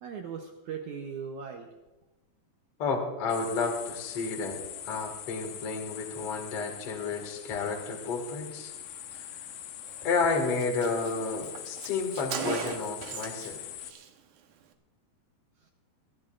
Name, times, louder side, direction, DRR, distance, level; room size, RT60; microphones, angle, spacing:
voice 1, 0.0-1.7 15.6-15.7, right 6 dB, 85° right, 3 dB, 1.6 m, -39 dB
voice 2, 2.8-8.7 9.1-9.2 10.0-13.7, left 4 dB, 45° left, 1 dB, 2.3 m, -31 dB
sound 1, 3.3-13.9, left 11 dB, 75° left, 2.8 m, -43 dB
Car, 9.9-10.0 10.3-10.4 10.6-13.6 13.8-14.1, right 7 dB, 70° right, 2.0 m, -38 dB
24.0 x 14.5 x 2.6 m, 1.1 s
omnidirectional pair, 4.8 m